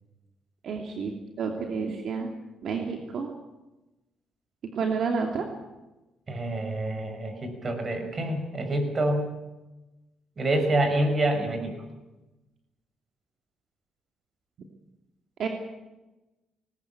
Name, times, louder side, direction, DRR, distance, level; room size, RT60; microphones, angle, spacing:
voice 1, 0.6-2.3 2.6-3.3 4.7-5.4 15.4-15.5, right 5 dB, 65° right, 3 dB, 2.8 m, -30 dB
voice 2, 6.3-9.3 10.4-11.7, right 1 dB, 35° right, 6 dB, 6.0 m, -27 dB
20.0 x 19.5 x 8.7 m, 1.0 s
cardioid pair, 90°, 0 cm